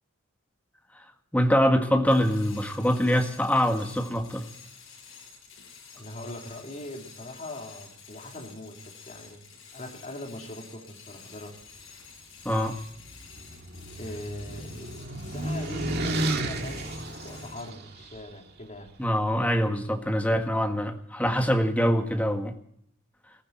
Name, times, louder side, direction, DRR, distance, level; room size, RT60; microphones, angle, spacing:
voice 1, 1.3-4.5 12.4-12.8 19.0-22.6, equal, 5° left, 5 dB, 1.7 m, -24 dB
sound 1, 2.1-17.8, left 6 dB, 75° left, 6.4 m, -50 dB
voice 2, 5.9-9.4 9.7-11.5 14.0-16.9 17.2-18.9, left 1 dB, 35° left, 1 dB, 3.6 m, -41 dB
sound 2, 12.9-18.2, right 1 dB, 50° right, 2.1 m, -32 dB
21.5 x 14.5 x 4.3 m, 0.69 s
head